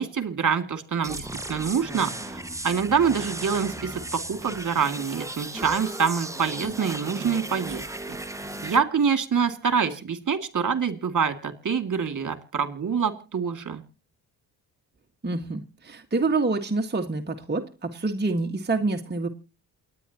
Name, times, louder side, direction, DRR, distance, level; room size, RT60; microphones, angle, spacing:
voice 1, 0.0-7.8 8.6-13.8, right 6 dB, 45° right, 8 dB, 2.4 m, -26 dB
sound 1, 1.0-8.8, right 1 dB, 5° right, 1.5 m, -36 dB
voice 2, 15.2-19.3, right 3 dB, 25° right, 3 dB, 1.8 m, -27 dB
28.5 x 10.0 x 3.0 m, 0.35 s
supercardioid pair, 50°, 43 cm